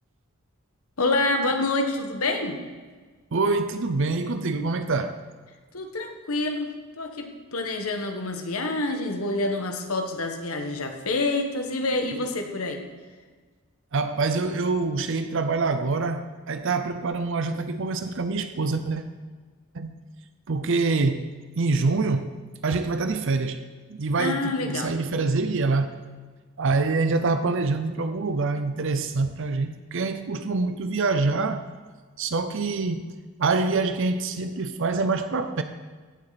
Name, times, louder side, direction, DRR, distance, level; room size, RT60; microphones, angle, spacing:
voice 1, 1.0-2.6 5.7-12.8 24.2-24.9, left 2 dB, 80° left, 1.5 m, -27 dB
voice 2, 3.3-5.2 12.1-12.3 13.9-19.0 19.7-19.9 20.5-21.3 21.6-22.4 22.6-23.6 23.9-26.0 26.6-31.7 32.2-35.6, right 3 dB, 60° right, 0.6 m, -25 dB
16.5 x 7.6 x 4.1 m
head